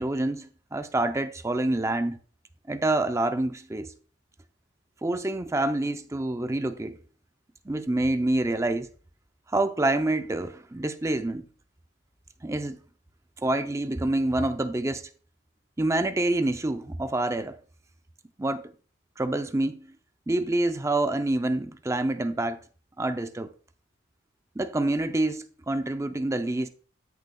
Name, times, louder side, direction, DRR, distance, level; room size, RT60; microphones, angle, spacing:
voice 1, 0.0-2.2 2.7-3.9 5.0-6.9 7.7-8.9 9.5-11.5 12.4-12.8 13.4-15.0 15.8-17.5 18.4-18.6 19.2-19.9 20.3-22.6 23.0-23.5 24.6-26.7, right 2 dB, 15° right, 0.4 m, -27 dB
13.5 x 6.6 x 2.2 m
head